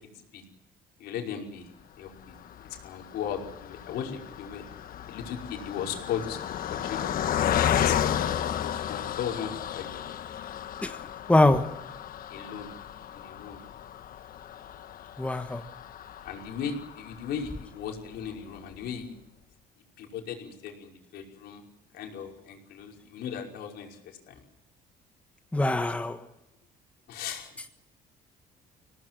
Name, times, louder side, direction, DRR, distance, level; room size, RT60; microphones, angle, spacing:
voice 1, 1.0-1.7 2.0-2.3 2.8-4.7 5.1-10.0 12.3-12.7 13.1-13.6 16.2-19.1 20.0-21.6 21.9-24.4 27.1-27.5, left 7 dB, 75° left, 5.5 m, -37 dB
Car passing by, 2.2-17.7 18.2-18.3 18.6-18.8, left 10 dB, 60° left, 1.3 m, -33 dB
voice 2, 11.3-11.8 15.2-15.6 25.5-26.2, left 2 dB, 10° left, 1.4 m, -23 dB
24.5 x 18.0 x 7.8 m
cardioid pair, 110°, 17 cm